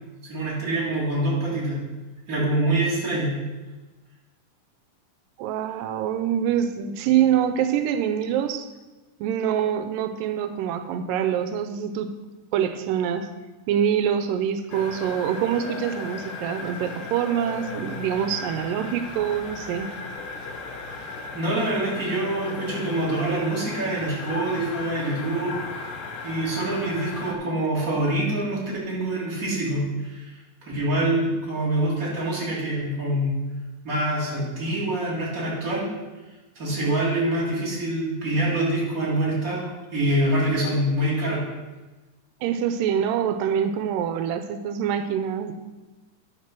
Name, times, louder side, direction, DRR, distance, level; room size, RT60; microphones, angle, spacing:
voice 1, 0.3-1.8 2.3-3.3 21.3-25.6 26.2-28.6 28.9-30.2 30.7-33.4 33.8-35.9 36.5-41.4, right 1 dB, 25° right, -6 dB, 2.7 m, -25 dB
voice 2, 5.4-8.7 9.2-12.1 12.5-13.3 13.7-19.9 42.4-45.5, right 9 dB, 90° right, 8 dB, 2.2 m, -25 dB
sound 1, 14.7-27.3, left 4 dB, 70° left, 1.3 m, -36 dB
10.5 x 4.5 x 6.0 m, 1.2 s
omnidirectional pair, 3.8 m